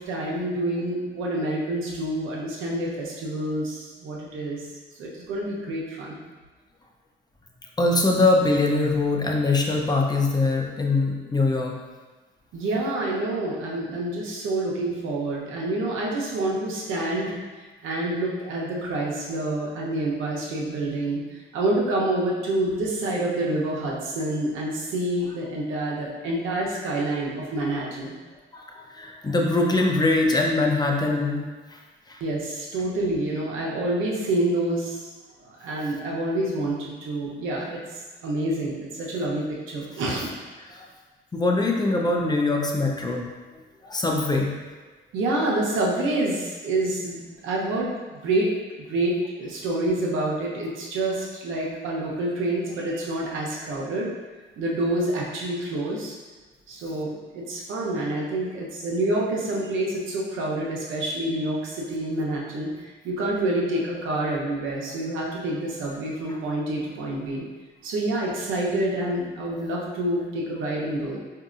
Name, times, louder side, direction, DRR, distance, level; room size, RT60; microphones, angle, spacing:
voice 1, 0.0-4.7 5.0-6.2 12.5-28.1 32.2-35.0 35.4-40.3 45.1-47.9 48.2-54.1 54.6-56.1 56.7-67.4 67.8-71.2, right 1 dB, 85° right, -3 dB, 0.8 m, -27 dB
voice 2, 7.8-11.7 28.5-31.4 31.7-31.8 32.1-32.2 40.6-40.9 41.3-43.3 43.8-44.5 66.3-66.4, left 2 dB, 20° left, 0 dB, 0.5 m, -23 dB
5.0 x 2.8 x 2.4 m, 1.3 s
cardioid pair, 90°, 20 cm